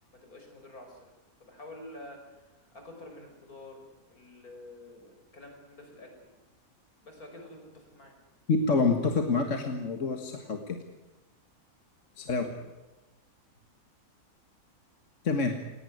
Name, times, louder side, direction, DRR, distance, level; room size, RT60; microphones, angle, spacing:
voice 1, 0.1-6.4 7.0-8.2 12.1-12.4, left 1 dB, 80° left, 3 dB, 5.8 m, -49 dB
voice 2, 8.5-10.8 12.2-12.5 15.2-15.5, left 4 dB, 55° left, 5 dB, 2.0 m, -27 dB
18.5 x 17.5 x 9.5 m, 1.1 s
omnidirectional pair, 1.5 m